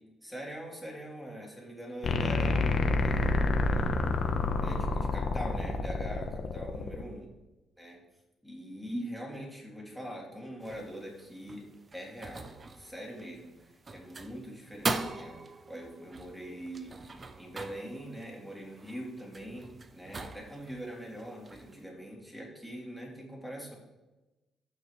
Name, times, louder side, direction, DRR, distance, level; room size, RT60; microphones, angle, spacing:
voice 1, 0.2-3.3 3.5-4.0 4.6-7.3 7.8-8.0 8.4-23.8, right 1 dB, ahead, -3 dB, 3.1 m, -43 dB
sound 1, 2.0-7.0, left 3 dB, 55° left, 1.0 m, -28 dB
sound 2, 10.6-21.8, right 3 dB, 35° right, 0.7 m, -42 dB
14.5 x 5.9 x 3.2 m, 1.0 s
cardioid pair, 90°, 0 cm